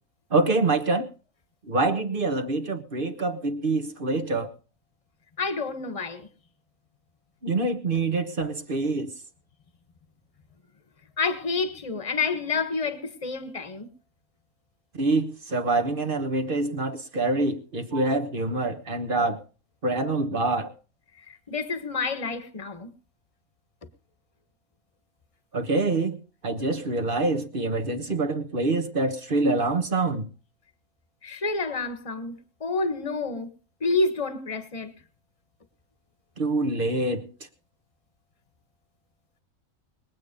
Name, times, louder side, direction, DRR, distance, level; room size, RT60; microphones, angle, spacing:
voice 1, 0.3-1.1 1.7-4.5 7.4-9.1 14.9-19.4 19.8-20.7 25.5-26.2 26.4-30.3 36.4-37.3, right 2 dB, 40° right, 1.5 m, -25 dB
voice 2, 5.4-6.3 11.2-13.9 21.3-22.9 31.2-33.5 33.8-34.9, left 4 dB, 25° left, 1.5 m, -29 dB
21.5 x 8.6 x 5.2 m
omnidirectional pair, 1.4 m